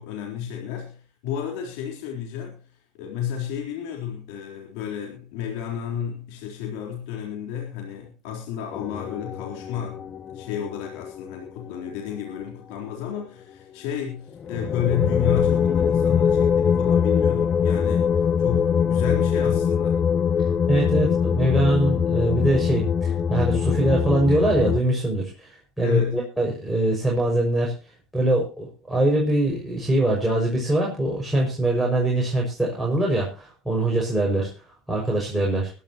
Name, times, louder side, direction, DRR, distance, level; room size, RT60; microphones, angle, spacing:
voice 1, 0.0-20.0 25.8-26.2, left 9 dB, 70° left, 0 dB, 3.8 m, -31 dB
sound 1, 8.7-11.9 14.4-24.8, left 7 dB, 40° left, 0.8 m, -23 dB
voice 2, 20.7-27.7 28.1-34.5 34.9-35.7, right 1 dB, ahead, 0 dB, 6.1 m, -23 dB
22.5 x 11.5 x 3.0 m, 0.33 s
hypercardioid pair, 90°, 0 cm